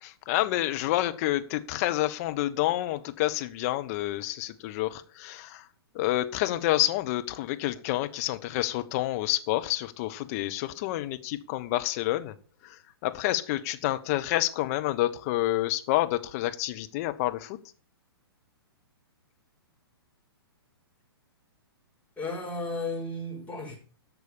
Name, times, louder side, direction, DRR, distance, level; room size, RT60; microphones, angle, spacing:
voice 1, 0.0-5.7 5.9-12.3 12.6-17.6, left 15 dB, 40° left, 10 dB, 1.1 m, -28 dB
voice 2, 22.2-23.7, left 2 dB, 10° left, -3 dB, 5.7 m, -34 dB
11.0 x 6.8 x 7.0 m, 0.40 s
figure-of-eight pair, 115°, 13 cm